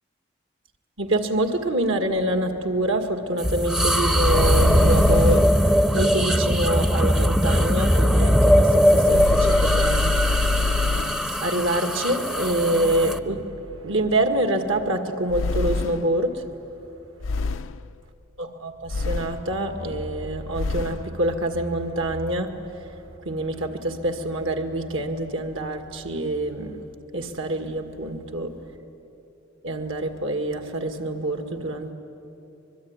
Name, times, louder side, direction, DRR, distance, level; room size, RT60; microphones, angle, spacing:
voice 1, 1.0-5.5 5.9-10.4 10.9-11.0 11.4-13.5 13.8-16.4 18.4-22.5 23.3-26.8 27.1-28.5 29.6-31.9, right 1 dB, 80° right, 6 dB, 2.1 m, -26 dB
sound 1, 3.4-13.2, equal, 5° right, 0.6 m, -20 dB
sound 2, 4.2-5.7 9.0-11.3 15.3-16.2 17.2-17.9 18.9-19.5 20.5-21.1, left 3 dB, 85° left, 0.5 m, -25 dB
24.5 x 22.0 x 9.7 m, 2.9 s
head